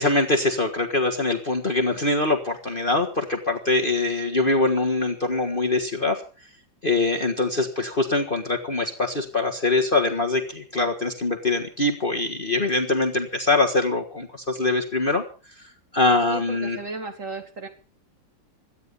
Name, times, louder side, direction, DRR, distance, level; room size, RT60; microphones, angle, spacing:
voice 1, 0.0-6.2 6.8-15.2 15.9-16.8, left 2 dB, 30° left, 6 dB, 1.6 m, -23 dB
voice 2, 16.3-17.7, right 3 dB, 40° right, 5 dB, 3.0 m, -35 dB
17.5 x 12.5 x 5.5 m, 0.36 s
omnidirectional pair, 2.1 m